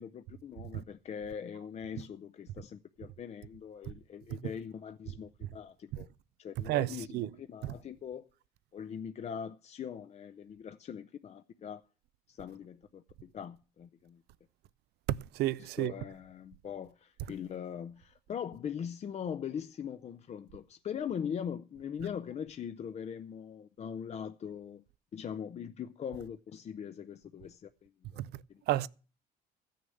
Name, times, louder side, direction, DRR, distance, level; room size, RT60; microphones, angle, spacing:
voice 1, 0.0-6.1 6.4-8.3 8.7-11.8 12.3-14.2 15.6-24.8 25.1-28.9, left 8 dB, 40° left, 0.6 m, -41 dB
voice 2, 6.7-7.3 15.4-15.9 28.2-28.3 28.7-28.9, right 15 dB, 75° right, 0.5 m, -30 dB
14.0 x 6.5 x 7.7 m
cardioid pair, 110°, 17 cm